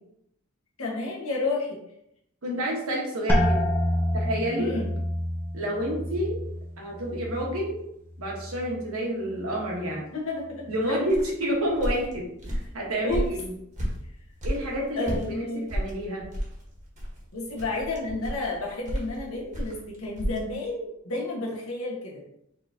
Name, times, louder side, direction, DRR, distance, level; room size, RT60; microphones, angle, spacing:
voice 1, 0.8-1.8 4.5-4.9 10.1-11.1 13.0-13.2 15.0-15.7 17.3-22.1, left 2 dB, 80° left, -3 dB, 1.4 m, -31 dB
voice 2, 2.4-3.7 4.1-4.7 5.5-6.4 6.8-7.8 8.2-10.0 10.7-13.5 14.4-16.2, equal, 90° right, -2 dB, 1.4 m, -29 dB
sound 1, 3.3-8.9 9.2-9.9 10.5-10.9, equal, 10° left, 0.6 m, -29 dB
sound 2, 11.1-15.3 15.7-20.4, equal, 35° right, 1.3 m, -32 dB
4.6 x 3.7 x 2.8 m, 0.78 s
head